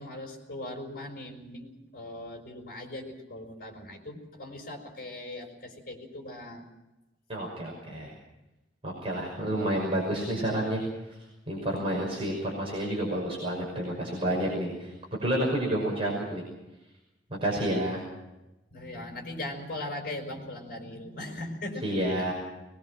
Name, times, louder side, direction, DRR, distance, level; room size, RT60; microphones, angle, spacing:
voice 1, 0.0-6.7 17.6-18.0 18.7-21.9 22.2-22.3, left 1 dB, 55° left, 3 dB, 5.5 m, -39 dB
voice 2, 7.3-8.1 8.8-10.8 11.5-14.9 15.2-16.4 17.4-18.0 21.8-22.3, right 1 dB, 30° right, -2 dB, 5.9 m, -29 dB
22.0 x 21.5 x 6.1 m, 1.0 s
head